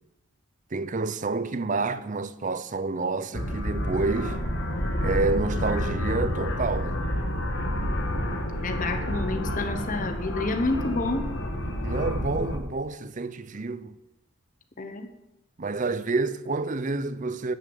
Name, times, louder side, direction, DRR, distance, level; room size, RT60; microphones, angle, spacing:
voice 1, 0.7-4.4 5.0-7.0 11.8-14.0 15.6-17.5, right 3 dB, 35° right, 0.6 m, -28 dB
sound 1, 3.3-12.6, left 1 dB, 55° left, 1.9 m, -29 dB
voice 2, 8.6-11.3 14.8-15.1, left 2 dB, 35° left, 1.1 m, -29 dB
13.5 x 6.4 x 8.1 m
head